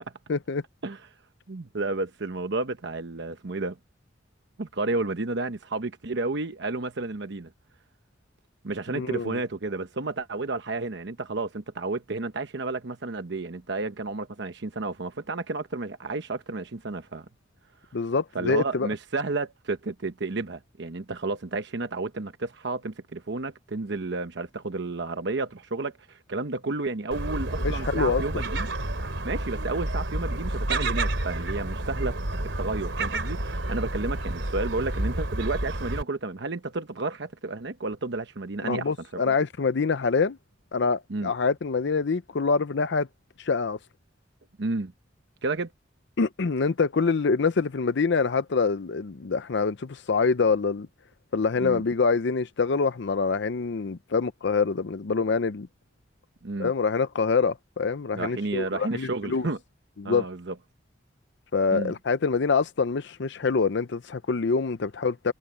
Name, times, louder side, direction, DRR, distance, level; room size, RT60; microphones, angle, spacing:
voice 1, 0.3-0.6 8.9-9.4 17.9-18.9 27.6-28.2 38.6-40.4 40.7-43.1 43.4-43.8 46.2-50.9 51.3-55.7 56.6-59.5 60.0-60.3 61.5-65.3, left 4 dB, 70° left, 0.6 m, -25 dB
voice 2, 1.5-3.8 4.6-7.5 8.6-17.3 18.3-28.7 29.2-32.2 32.6-39.3 41.1-41.3 44.6-44.9 45.4-45.7 51.6-51.8 56.4-56.7 58.1-59.6 60.0-60.5 61.7-61.9, right 3 dB, 65° right, 1.0 m, -31 dB
Gull seagull, 27.1-36.0, right 1 dB, 80° right, 3.3 m, -30 dB
head